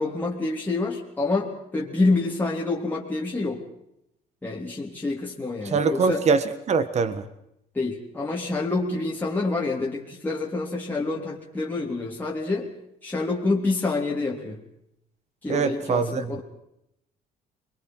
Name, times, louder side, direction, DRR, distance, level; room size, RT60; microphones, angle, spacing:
voice 1, 0.0-3.6 4.4-6.3 7.7-12.7 13.0-14.6 15.4-16.4, left 3 dB, 10° left, -4 dB, 3.4 m, -27 dB
voice 2, 5.7-7.2 15.5-16.4, right 5 dB, 40° right, 13 dB, 1.4 m, -23 dB
28.5 x 22.0 x 4.7 m, 0.79 s
cardioid pair, 110°, 17 cm